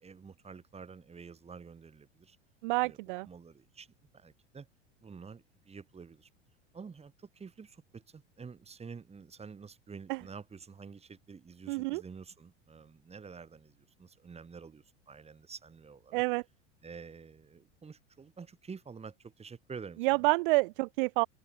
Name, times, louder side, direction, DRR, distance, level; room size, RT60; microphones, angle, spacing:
voice 1, 0.0-2.4 2.8-3.0 3.2-3.9 4.1-4.7 5.0-6.3 6.7-16.2 16.8-20.3, right 5 dB, 15° right, 2.8 m, -49 dB
voice 2, 2.6-3.3 10.1-10.2 11.7-12.0 16.1-16.4 20.0-21.3, right 25 dB, 45° right, 0.5 m, -28 dB
figure-of-eight pair, 85°, 37 cm